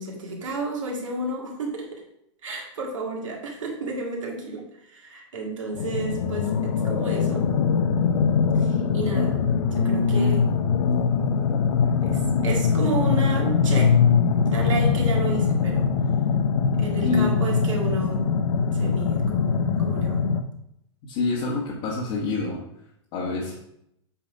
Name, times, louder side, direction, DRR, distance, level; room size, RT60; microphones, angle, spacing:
voice 1, 0.0-2.0 2.4-7.5 8.5-9.4 9.7-10.4 12.0-13.9 14.5-15.9 16.8-18.3 18.8-20.2, right 3 dB, 85° right, -1 dB, 2.2 m, -32 dB
sound 1, 5.7-20.4, left 6 dB, 75° left, 0.7 m, -22 dB
voice 2, 17.0-17.3 21.0-22.6 23.1-23.5, left 4 dB, 50° left, -6 dB, 1.9 m, -26 dB
8.1 x 4.1 x 4.8 m, 0.77 s
hypercardioid pair, 125°, 16 cm